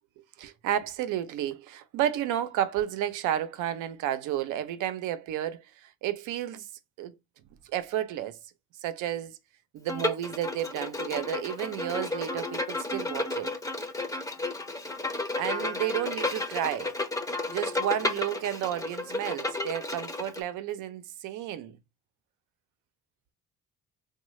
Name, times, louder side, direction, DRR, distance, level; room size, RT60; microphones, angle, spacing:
voice 1, 0.4-6.7 7.0-7.1 7.7-8.4 8.8-9.4 9.7-13.5 15.4-16.9 17.5-21.8, right 11 dB, 90° right, 0.5 m, -31 dB
Bowed string instrument, 9.9-20.4, left 2 dB, 10° left, 0.5 m, -32 dB
3.1 x 2.1 x 3.0 m
cardioid pair, 90°, 30 cm